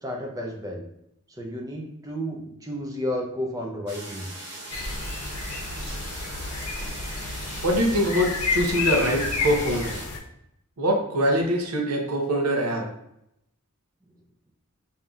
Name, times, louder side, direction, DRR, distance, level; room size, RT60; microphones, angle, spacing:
voice 1, 0.0-0.9 1.4-4.3, equal, 15° right, 1 dB, 0.5 m, -32 dB
sound 1, 3.9-10.1, right 2 dB, 50° right, 0.9 m, -39 dB
sound 2, 4.7-10.2, left 4 dB, 90° left, 0.7 m, -30 dB
voice 2, 7.6-9.9 10.8-12.8, equal, 85° right, 1 dB, 0.7 m, -23 dB
5.1 x 2.7 x 2.3 m, 0.78 s
head